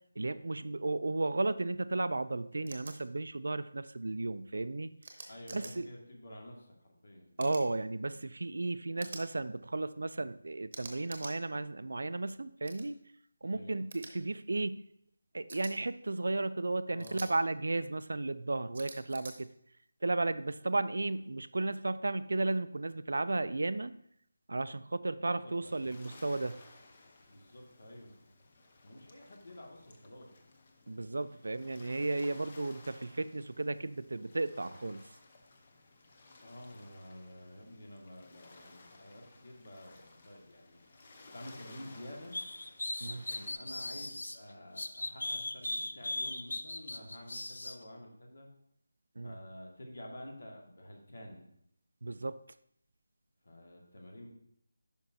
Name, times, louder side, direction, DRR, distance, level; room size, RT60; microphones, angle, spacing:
voice 1, 0.2-4.9 5.5-5.9 7.4-13.0 13.4-14.8 15.3-19.5 20.0-23.9 24.5-26.6 30.9-35.1 43.0-43.2 49.2-49.4 52.0-52.4, right 2 dB, 75° right, 14 dB, 0.4 m, -34 dB
sound 1, 2.7-2.9 5.0-5.7 7.4-7.7 9.0-9.3 10.7-11.3 12.6-12.9 13.9-14.1 15.5-15.7 17.0-17.3 18.7-19.3, right 3 dB, 35° right, 0.9 m, -47 dB
voice 2, 5.3-7.4 13.4-13.8 16.9-17.4 25.3-26.0 27.3-28.2 28.8-30.3 36.4-40.8 41.3-42.4 43.0-48.5 49.2-51.5 53.4-54.3, left 1 dB, 60° left, 1 dB, 1.8 m, -50 dB
sound 2, 25.6-43.5, left 2 dB, 25° left, 0.7 m, -58 dB
sound 3, 42.3-44.4 44.8-47.8, left 2 dB, 85° left, 0.6 m, -38 dB
10.5 x 5.3 x 2.7 m, 0.72 s
figure-of-eight pair, 175°, 0 cm